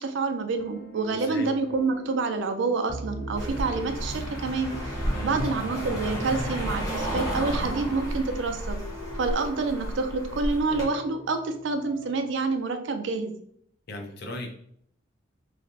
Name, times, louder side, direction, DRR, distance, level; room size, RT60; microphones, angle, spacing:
voice 1, 0.0-8.8 9.2-13.3, right 3 dB, 60° right, 7 dB, 0.4 m, -28 dB
sound 1, 0.6-12.6, left 2 dB, 80° left, 1.0 m, -45 dB
voice 2, 1.1-1.5 5.1-5.6 13.9-14.5, left 1 dB, 55° left, 3 dB, 0.6 m, -36 dB
sound 2, 2.9-10.0, right 2 dB, 5° right, 0.5 m, -43 dB
Car passing by, 3.4-10.8, right 1 dB, 20° left, 0.9 m, -32 dB
3.1 x 2.5 x 2.5 m, 0.66 s
head